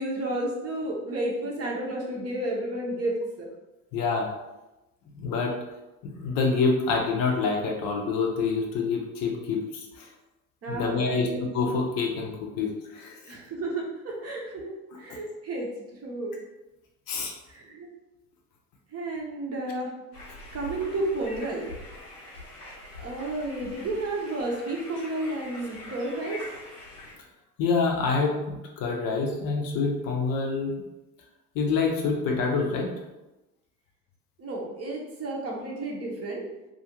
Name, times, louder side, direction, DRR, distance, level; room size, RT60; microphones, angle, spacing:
voice 1, 0.0-3.5 10.6-11.4 13.3-14.7 15.0-15.7 16.0-16.4 17.5-17.9 18.9-19.9 20.5-21.7 23.0-26.5 34.4-36.4, right 2 dB, 30° right, -2 dB, 0.7 m, -31 dB
voice 2, 3.9-4.3 5.1-5.5 6.0-10.1 10.7-11.3 11.5-13.2 17.1-17.3 27.6-30.7 31.5-32.9, left 4 dB, 45° left, 0 dB, 0.7 m, -26 dB
sound 1, 20.1-27.1, left 1 dB, 80° left, 0.9 m, -44 dB
2.4 x 2.4 x 2.9 m, 1.0 s
hypercardioid pair, 65°, 47 cm